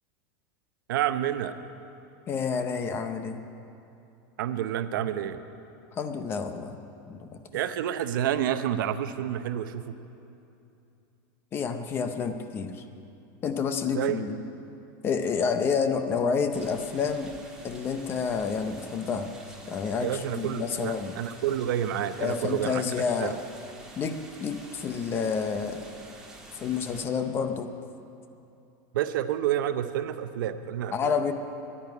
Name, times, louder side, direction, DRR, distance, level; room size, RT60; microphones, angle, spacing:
voice 1, 0.9-1.5 4.4-5.4 7.5-9.9 13.9-14.3 20.0-22.8 23.2-23.3 28.9-31.2, right 11 dB, 75° right, 10 dB, 0.7 m, -29 dB
voice 2, 2.3-3.4 5.9-6.8 7.1-7.4 11.5-12.8 13.4-14.4 15.0-17.3 17.6-19.3 19.7-21.2 22.2-23.4 24.0-25.8 26.5-27.7 30.9-31.3, left 5 dB, 20° left, 8 dB, 0.6 m, -29 dB
sound 1, 16.5-27.1, right 2 dB, 5° right, 1.5 m, -48 dB
11.0 x 9.9 x 9.4 m, 2.7 s
supercardioid pair, 170°, 11 cm